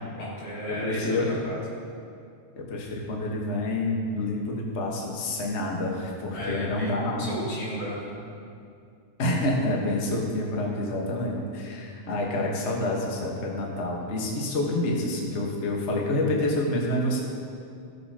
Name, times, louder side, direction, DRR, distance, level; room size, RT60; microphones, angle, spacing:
voice 1, 0.2-1.6 6.3-8.2, equal, 85° left, -8 dB, 4.2 m, -34 dB
voice 2, 0.7-1.3 2.6-7.2 9.2-17.2, left 1 dB, 55° left, -1 dB, 0.8 m, -28 dB
17.0 x 6.7 x 2.9 m, 2.4 s
omnidirectional pair, 3.3 m